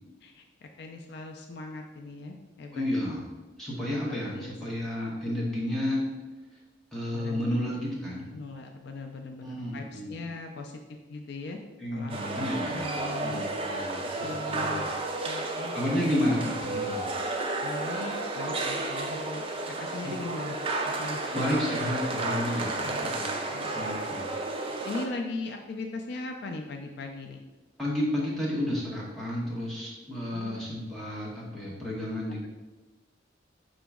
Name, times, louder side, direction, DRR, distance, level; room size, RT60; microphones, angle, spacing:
voice 1, 0.2-2.9 4.0-4.6 7.1-7.4 8.3-10.8 11.1-11.6 11.9-13.4 14.2-14.9 15.2-15.7 17.6-20.6 20.9-21.2 22.8-23.1 23.5-23.8 24.8-27.4 28.2-28.3 30.2-30.6, left 3 dB, 60° left, 4 dB, 0.4 m, -39 dB
voice 2, 2.7-3.2 3.6-6.1 6.9-8.3 9.4-10.1 11.8-14.9 15.7-17.1 21.3-23.3 23.7-24.3 27.8-32.5, left 1 dB, ahead, -6 dB, 1.1 m, -31 dB
sound 1, 12.1-25.1, right 2 dB, 30° right, 0.4 m, -32 dB
5.1 x 2.9 x 3.5 m, 1.2 s
head